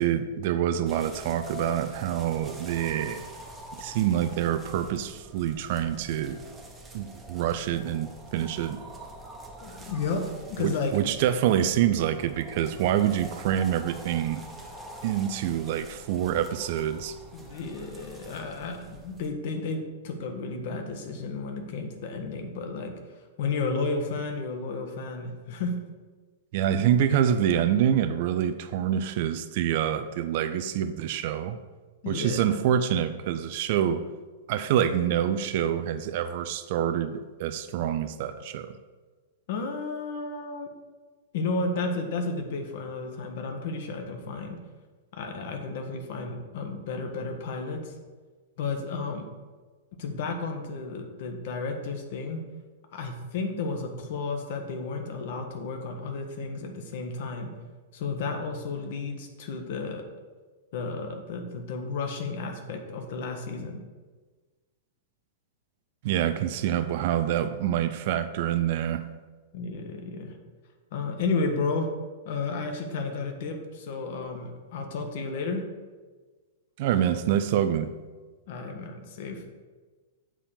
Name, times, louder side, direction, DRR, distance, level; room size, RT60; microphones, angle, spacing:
voice 1, 0.0-3.2 3.8-6.4 6.9-8.8 10.6-14.4 15.0-17.2 26.5-31.6 32.1-34.0 34.5-38.7 66.0-69.0 76.8-77.9, right 10 dB, 45° right, 10 dB, 0.5 m, -26 dB
sound 1, 0.9-19.3, right 1 dB, 10° right, 1.1 m, -45 dB
voice 2, 9.6-10.9 17.3-22.9 23.4-25.7 32.0-32.6 39.5-40.7 41.3-44.6 45.1-48.0 48.6-49.3 50.0-52.4 52.9-57.5 57.9-60.0 60.7-63.8 69.5-70.4 70.9-71.9 72.2-75.6 78.5-79.4, left 3 dB, 50° left, 4 dB, 1.2 m, -32 dB
7.4 x 4.2 x 6.8 m, 1.3 s
figure-of-eight pair, 100°, 0 cm